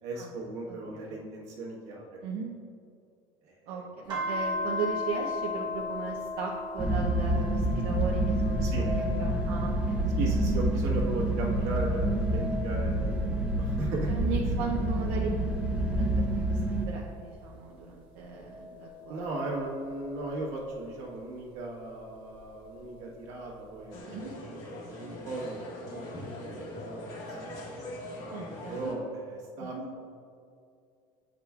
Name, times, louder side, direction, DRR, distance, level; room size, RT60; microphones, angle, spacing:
voice 1, 0.0-2.1 3.4-3.8 4.2-4.3 8.6-8.9 10.2-13.2 13.5-14.1 14.9-15.2 19.1-24.1 24.5-30.0, right 2 dB, 60° right, -3 dB, 1.4 m, -37 dB
voice 2, 0.7-1.1 2.2-2.5 3.7-10.0 14.1-15.3 15.9-16.2 16.5-19.3 24.0-24.3 28.3-28.9 29.6-29.8, right 5 dB, 80° right, -2 dB, 0.7 m, -37 dB
sound 1, 4.1-10.8 11.3-14.2 14.8-17.5 18.3-20.7 22.1-23.1, left 3 dB, 35° right, 1.1 m, -39 dB
sound 2, 6.8-16.8, right 1 dB, 10° right, 0.4 m, -28 dB
sound 3, 23.9-28.9, left 1 dB, 60° left, 1.5 m, -41 dB
8.2 x 5.0 x 2.4 m, 2.4 s
cardioid pair, 165°, 13 cm